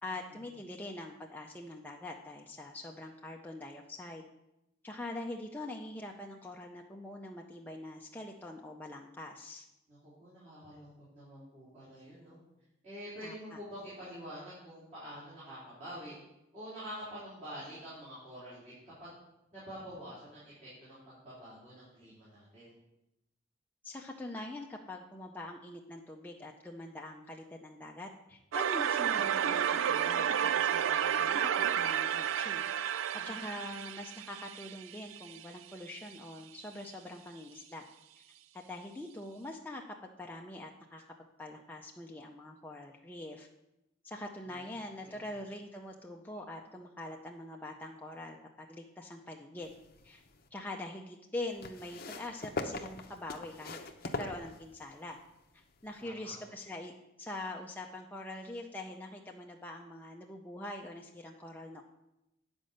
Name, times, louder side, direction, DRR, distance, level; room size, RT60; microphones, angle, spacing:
voice 1, 0.0-4.3 4.8-9.6 13.2-13.6 23.8-32.7 33.1-37.8 38.2-38.3 38.5-39.8 40.2-41.0 41.4-43.5 44.0-49.7 50.0-50.2 50.5-53.8 54.1-55.2 55.5-56.9 57.2-61.8, left 1 dB, 10° left, 0 dB, 0.5 m, -44 dB
voice 2, 9.9-12.4 12.8-16.2 16.5-18.7 19.0-19.1 19.5-22.7 33.1-33.7 45.0-45.2 56.0-56.4, equal, 40° right, -11 dB, 3.9 m, -47 dB
sound 1, 28.5-35.4, right 9 dB, 90° right, 0.4 m, -31 dB
sound 2, 49.6-50.5 51.6-55.0 56.0-56.1, left 2 dB, 50° left, 0.7 m, -41 dB
9.3 x 5.2 x 6.5 m, 0.91 s
head